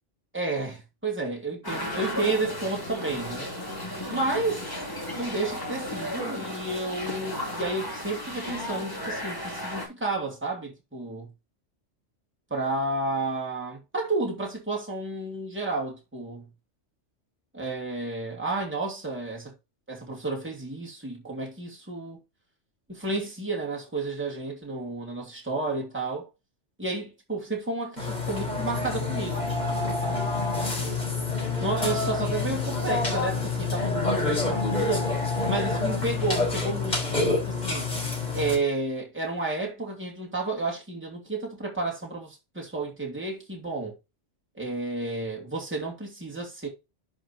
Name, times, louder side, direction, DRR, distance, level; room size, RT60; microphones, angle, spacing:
voice 1, 0.3-3.5 4.1-4.7 5.1-11.3 12.5-16.4 17.5-19.5 19.9-22.2 22.9-26.3 26.8-29.5 30.0-30.3 30.5-31.0 31.6-35.1 35.5-37.9 38.3-43.9 44.6-46.7, right 2 dB, 10° right, 2.6 m, -31 dB
sound 1, 1.6-9.9, left 1 dB, 15° left, 3.1 m, -34 dB
Burping eructation, 28.0-38.6, left 3 dB, 35° left, 4.6 m, -27 dB
11.5 x 4.9 x 2.9 m
omnidirectional pair, 1.2 m